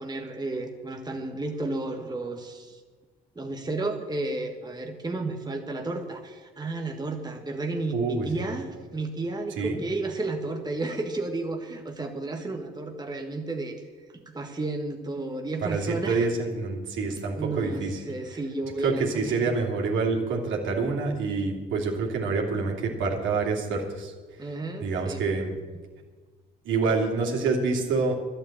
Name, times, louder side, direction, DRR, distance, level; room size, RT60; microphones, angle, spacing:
voice 1, 0.0-2.8 3.3-13.9 14.1-16.3 17.4-19.5 24.4-25.3, right 2 dB, 20° right, 3 dB, 1.5 m, -32 dB
voice 2, 7.9-8.3 9.6-9.8 15.6-18.0 18.8-24.5 24.8-25.5 26.6-28.2, right 4 dB, 70° right, 0 dB, 2.7 m, -27 dB
11.5 x 8.0 x 8.8 m, 1.4 s
supercardioid pair, 65°, 21 cm